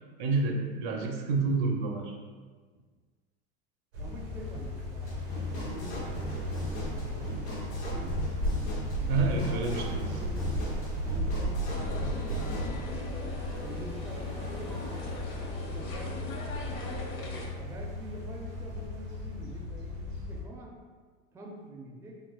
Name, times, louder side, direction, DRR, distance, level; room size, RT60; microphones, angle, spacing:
voice 1, 0.2-2.1 9.1-10.0, right 3 dB, 60° right, 2 dB, 0.6 m, -29 dB
sound 1, 3.9-20.4, equal, 90° right, 0.9 m, -35 dB
voice 2, 4.0-5.2 5.5-7.4 7.9-8.2 8.9-10.6 11.1-12.9 13.6-15.2 15.5-16.8 17.6-20.7 21.3-22.2, right 1 dB, 10° right, -1 dB, 0.4 m, -46 dB
sound 2, 5.1-12.7, left 1 dB, 85° left, 1.1 m, -39 dB
sound 3, 11.7-17.5, left 2 dB, 40° left, 0.7 m, -41 dB
3.3 x 2.8 x 2.2 m, 1.5 s
hypercardioid pair, 90°, 32 cm